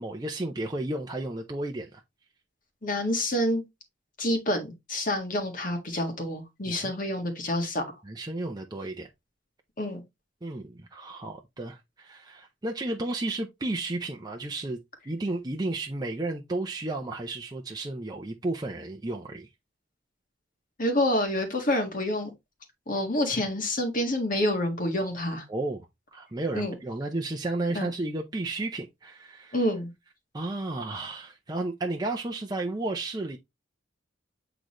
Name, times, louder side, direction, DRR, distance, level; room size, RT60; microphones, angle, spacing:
voice 1, 0.0-2.0 6.7-7.0 8.0-9.1 10.4-14.8 15.1-19.5 25.5-25.8 26.1-29.6 30.3-33.4, right 2 dB, 20° right, 0.6 m, -33 dB
voice 2, 2.8-3.6 4.2-7.8 9.8-10.0 20.8-22.3 22.9-25.4 26.5-26.7 27.8-27.9 29.5-29.9, left 1 dB, 45° left, 1.7 m, -27 dB
8.2 x 3.9 x 3.0 m
head